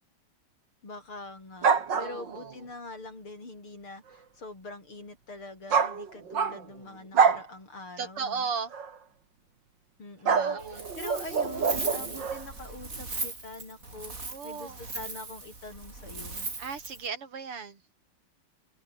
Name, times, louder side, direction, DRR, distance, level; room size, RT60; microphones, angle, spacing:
voice 1, 0.8-1.7 2.0-8.5 10.0-16.5, left 2 dB, 70° left, 8.4 m, -44 dB
sound 1, 1.6-2.5 5.7-6.8 7.1-7.5 8.7-8.9 10.3-12.4, right 6 dB, 55° right, 2.9 m, -26 dB
voice 2, 2.0-2.5 8.0-8.7 10.3-10.8 14.3-14.8 16.6-17.8, right 5 dB, 80° right, 3.9 m, -36 dB
Wind, 10.6-17.1, right 3 dB, 35° right, 4.9 m, -38 dB
omnidirectional pair, 2.4 m